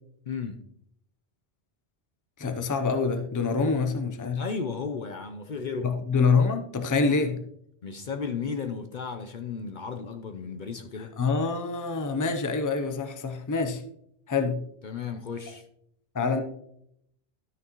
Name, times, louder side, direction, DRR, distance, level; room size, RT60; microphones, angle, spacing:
voice 1, 0.3-0.7 4.3-6.0 7.0-7.4 7.8-11.2 14.8-15.6, left 5 dB, 55° left, 0.7 m, -34 dB
voice 2, 2.4-4.4 5.8-7.4 11.2-13.8 14.3-14.6 16.1-16.4, left 4 dB, 20° left, 0.6 m, -26 dB
12.5 x 6.1 x 3.0 m
omnidirectional pair, 1.1 m